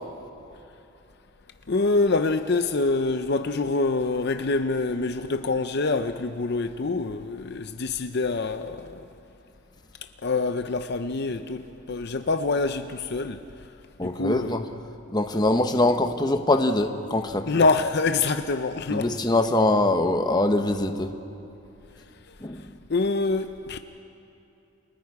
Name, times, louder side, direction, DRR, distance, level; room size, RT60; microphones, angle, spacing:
voice 1, 1.7-9.1 10.2-13.4 14.0-14.7 17.5-19.1 22.9-23.8, left 3 dB, 55° left, 0.6 m, -25 dB
voice 2, 14.0-14.7 15.1-17.5 18.9-21.1 22.4-22.6, left 2 dB, 20° left, 1.0 m, -23 dB
29.5 x 23.0 x 4.9 m
head